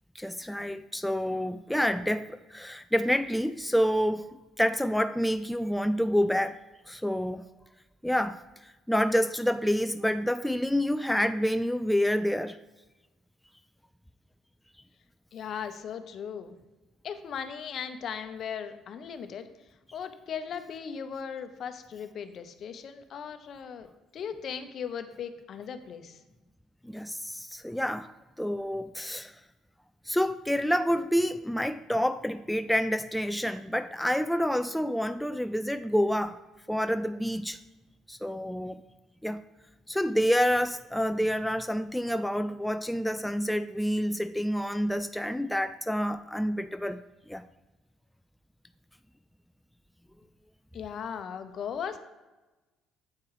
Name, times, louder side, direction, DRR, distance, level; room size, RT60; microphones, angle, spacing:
voice 1, 0.2-4.3 4.6-6.6 6.9-7.4 8.0-12.6 26.8-28.1 28.4-29.4 30.1-36.4 36.7-37.6 38.1-38.8 39.2-39.4 39.9-47.0 47.3-47.4, equal, 5° left, 0.3 m, -28 dB
voice 2, 15.3-16.6 17.0-19.5 19.9-23.9 24.1-26.2 50.7-52.0, left 7 dB, 55° left, 0.8 m, -38 dB
8.4 x 4.6 x 4.8 m
supercardioid pair, 75°, 0 cm